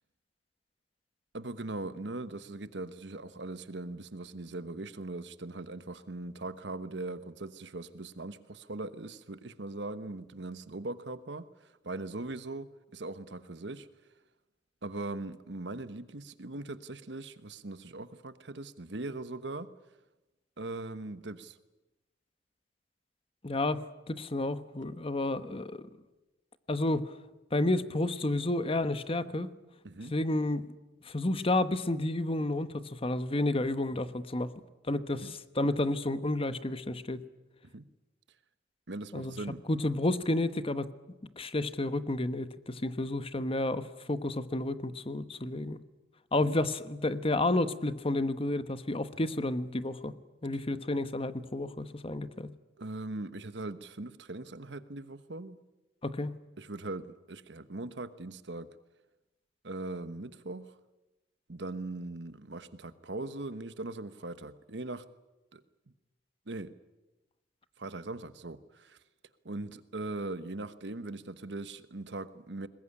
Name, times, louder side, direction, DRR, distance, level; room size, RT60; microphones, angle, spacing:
voice 1, 1.3-13.9 14.8-19.7 20.6-21.6 29.8-30.1 35.2-35.3 37.7-37.9 38.9-39.6 46.4-46.6 52.8-55.6 56.6-58.7 59.6-60.8 61.5-65.0 65.5-65.6 66.5-66.7 67.8-69.0 69.4-72.7, right 2 dB, 70° right, 13 dB, 1.2 m, -40 dB
voice 2, 23.4-25.8 26.7-27.1 27.5-29.5 30.1-30.7 31.0-34.5 34.9-37.2 39.1-39.4 39.7-40.9 41.4-45.8 46.3-50.1 50.4-52.5 56.0-56.4, left 2 dB, 30° left, 12 dB, 1.1 m, -31 dB
22.0 x 20.5 x 9.9 m, 1.1 s
head